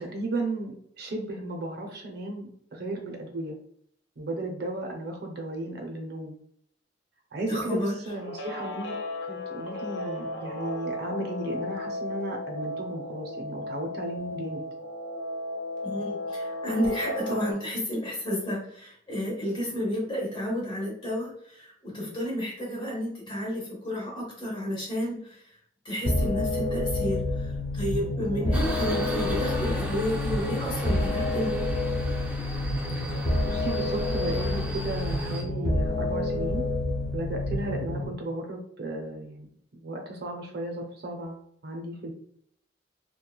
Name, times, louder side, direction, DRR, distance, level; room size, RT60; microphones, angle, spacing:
voice 1, 0.0-3.5 4.2-6.4 7.3-8.9 9.3-14.6 33.0-33.1 33.5-36.7 37.1-39.5 39.8-42.1, right 2 dB, 60° right, 2 dB, 0.6 m, -34 dB
voice 2, 7.5-7.9 15.8-21.3 21.6-25.3 25.8-27.2 27.7-31.5, left 1 dB, 25° left, -3 dB, 1.0 m, -31 dB
Guitar, 8.1-17.5, left 1 dB, 85° left, 0.7 m, -35 dB
sound 1, 26.0-38.0, left 1 dB, 60° left, 1.1 m, -28 dB
Subway metro underground, 28.5-35.4, right 1 dB, 5° right, 0.3 m, -37 dB
3.0 x 2.2 x 2.2 m, 0.66 s
head